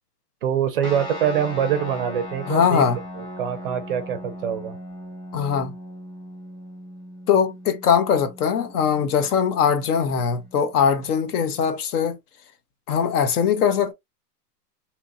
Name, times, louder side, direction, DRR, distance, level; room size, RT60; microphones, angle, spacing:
voice 1, 0.4-2.8 3.2-4.8, right 9 dB, 35° right, 0.4 m, -24 dB
sound 1, 0.8-11.7, equal, 10° left, 1.1 m, -39 dB
voice 2, 2.5-3.0 5.3-5.7 7.3-12.2 12.9-13.9, left 7 dB, 65° left, 0.9 m, -21 dB
2.9 x 2.7 x 2.4 m
hypercardioid pair, 140°, 48 cm